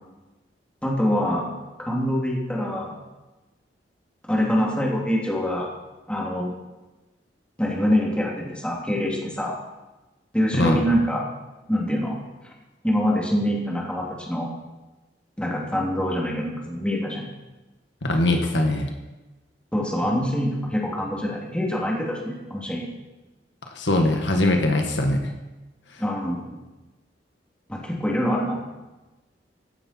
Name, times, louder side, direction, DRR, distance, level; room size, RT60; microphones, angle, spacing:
voice 1, 0.8-1.5 1.8-3.0 4.3-5.7 6.1-6.5 7.6-9.6 10.3-11.3 11.7-12.1 12.4-12.5 12.8-14.5 15.4-17.3 19.7-22.8 26.0-26.4 27.7-28.6, equal, 5° left, -3 dB, 2.9 m, -25 dB
voice 2, 18.0-18.9 23.7-25.3, left 1 dB, 80° left, 3 dB, 1.6 m, -21 dB
16.0 x 9.7 x 4.5 m, 1.1 s
head